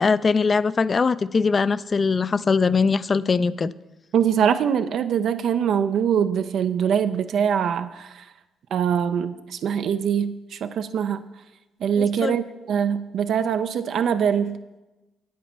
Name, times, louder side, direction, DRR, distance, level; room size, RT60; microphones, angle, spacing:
voice 1, 0.0-3.7 12.0-12.4, left 4 dB, 35° left, 18 dB, 0.3 m, -21 dB
voice 2, 4.1-8.2 8.7-11.2 11.8-14.6, right 8 dB, 70° right, 10 dB, 0.4 m, -23 dB
8.6 x 8.4 x 5.4 m, 1.1 s
cardioid pair, 90°, 0 cm